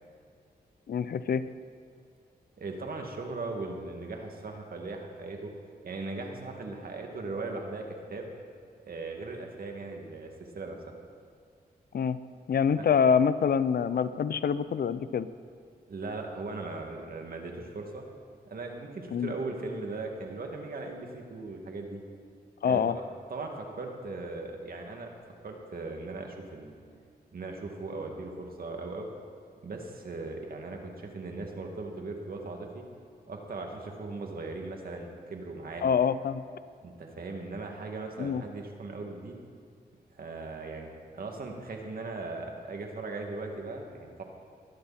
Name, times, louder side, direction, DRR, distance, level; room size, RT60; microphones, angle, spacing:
voice 1, 0.9-1.5 11.9-12.2 12.5-15.3 19.1-19.3 22.6-22.9 35.8-36.4 38.2-38.4, left 7 dB, 70° left, 14 dB, 0.6 m, -26 dB
voice 2, 2.6-5.5 5.8-8.3 8.9-10.8 15.9-18.1 18.5-22.0 22.6-22.8 23.3-25.1 25.4-26.8 27.3-29.1 29.6-32.8 33.3-35.8 36.8-39.4 40.2-40.9 41.1-44.2, right 3 dB, 65° right, 2 dB, 2.3 m, -38 dB
19.5 x 13.5 x 4.3 m, 2.2 s
cardioid pair, 65°, 16 cm